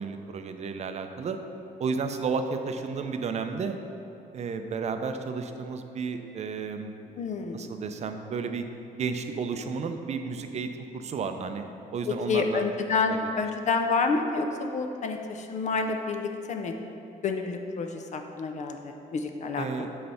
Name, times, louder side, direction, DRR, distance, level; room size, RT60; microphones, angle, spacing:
voice 1, 0.0-1.4 1.8-3.8 4.3-6.9 7.5-8.6 9.0-12.7 13.1-13.2 19.6-19.9, right 5 dB, 45° right, 7 dB, 0.5 m, -32 dB
voice 2, 7.2-7.6 12.1-16.7 17.2-19.9, left 4 dB, 50° left, 5 dB, 0.6 m, -29 dB
7.8 x 3.3 x 5.6 m, 2.8 s
cardioid pair, 105°, 16 cm